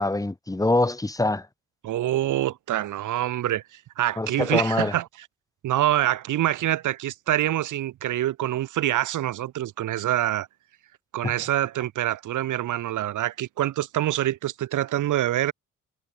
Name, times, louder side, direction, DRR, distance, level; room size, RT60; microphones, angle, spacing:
voice 1, 0.0-1.5 4.2-4.9 11.2-11.3, left 2 dB, 10° left, 2.0 m, -24 dB
voice 2, 1.8-5.1 5.6-10.5 11.1-15.5, right 13 dB, 80° right, 6.9 m, -25 dB
cardioid pair, 90°, 30 cm